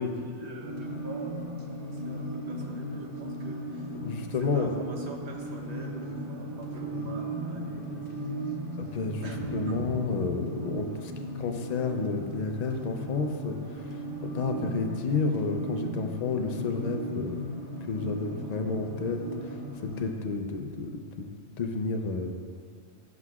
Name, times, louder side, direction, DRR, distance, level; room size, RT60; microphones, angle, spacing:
voice 1, 0.0-3.9 4.4-8.6 8.9-9.0 9.2-9.9, right 2 dB, 55° right, 1 dB, 1.1 m, -44 dB
sound 1, 0.6-20.0, right 1 dB, 35° right, 2.1 m, -36 dB
voice 2, 3.9-4.7 8.8-17.4 17.8-21.3 21.6-22.3, left 4 dB, 60° left, 4 dB, 0.4 m, -31 dB
12.0 x 7.8 x 2.4 m, 2.1 s
omnidirectional pair, 1.4 m